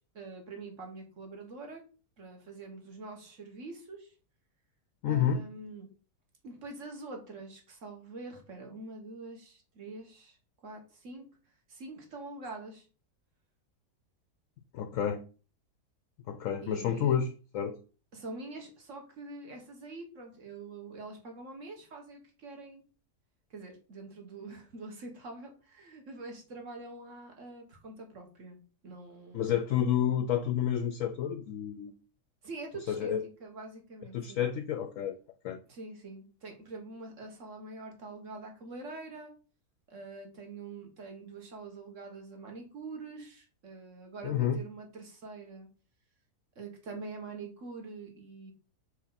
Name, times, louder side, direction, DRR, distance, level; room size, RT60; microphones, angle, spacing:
voice 1, 0.0-1.8 2.2-4.1 5.1-5.9 6.4-10.4 10.6-11.3 11.7-12.9 16.6-17.1 18.1-22.8 23.5-29.6 32.4-33.2 33.4-34.4 35.7-39.3 39.9-45.7 46.6-48.5, right 3 dB, 50° right, 1.8 m, -45 dB
voice 2, 5.0-5.4 14.7-15.2 16.3-17.8 29.3-31.9 32.9-33.2 34.1-35.2 35.4-35.6 44.2-44.6, left 9 dB, 70° left, 0.8 m, -30 dB
4.7 x 4.4 x 5.6 m
omnidirectional pair, 1.7 m